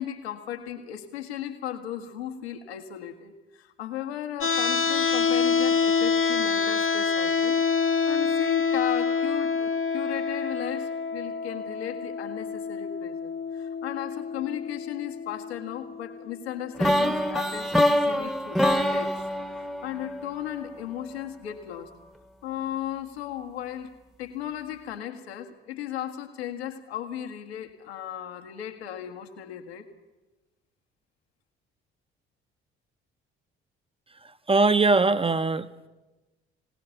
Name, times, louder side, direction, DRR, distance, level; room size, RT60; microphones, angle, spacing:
voice 1, 0.0-7.6 8.1-19.2 19.6-22.0 22.4-23.9 24.2-29.9, left 11 dB, 80° left, 6 dB, 1.6 m, -36 dB
sound 1, 4.4-16.4, left 5 dB, 40° left, 1.2 m, -27 dB
sound 2, 16.8-20.8, left 1 dB, ahead, 1.3 m, -25 dB
voice 2, 34.2-35.9, right 3 dB, 15° right, 12 dB, 1.1 m, -22 dB
25.0 x 18.0 x 7.0 m, 1.1 s
figure-of-eight pair, 45°, 32 cm